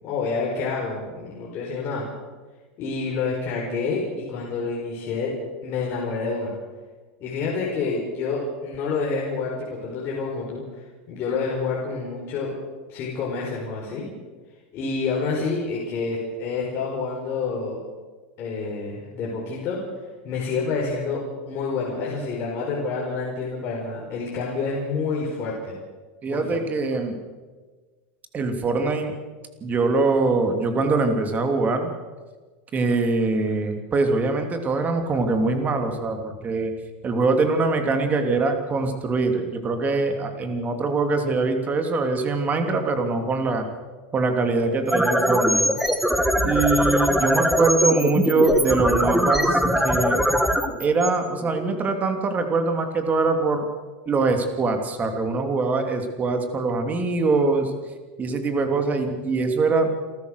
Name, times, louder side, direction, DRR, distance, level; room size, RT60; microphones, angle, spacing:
voice 1, 0.0-2.1 2.8-5.3 5.6-6.5 7.2-12.5 12.9-14.0 14.7-17.8 18.4-19.8 20.2-25.7 26.3-26.6, left 4 dB, 40° left, -3 dB, 4.8 m, -28 dB
voice 2, 26.2-27.2 28.3-29.1 29.6-31.9 32.7-36.7 37.0-43.7 44.1-45.7 46.4-50.2 50.8-53.7 54.1-57.7 58.2-59.9, right 3 dB, 25° right, 5 dB, 2.9 m, -23 dB
sound 1, 44.7-51.8, equal, ahead, 1.6 m, -22 dB
29.0 x 13.5 x 6.6 m, 1.4 s
supercardioid pair, 130°, 6 cm